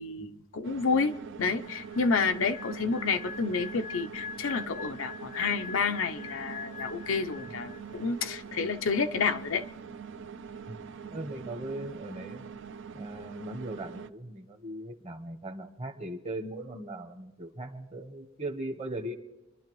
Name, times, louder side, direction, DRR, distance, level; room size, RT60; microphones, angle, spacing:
voice 1, 0.0-9.7, left 4 dB, 80° left, 0.6 m, -30 dB
sound 1, 0.6-14.1, right 6 dB, 65° right, 0.5 m, -44 dB
sound 2, 1.6-8.5, left 6 dB, 35° left, 0.4 m, -43 dB
voice 2, 11.1-12.6 12.9-19.1, right 1 dB, 35° right, 1.1 m, -39 dB
26.0 x 11.5 x 3.1 m
head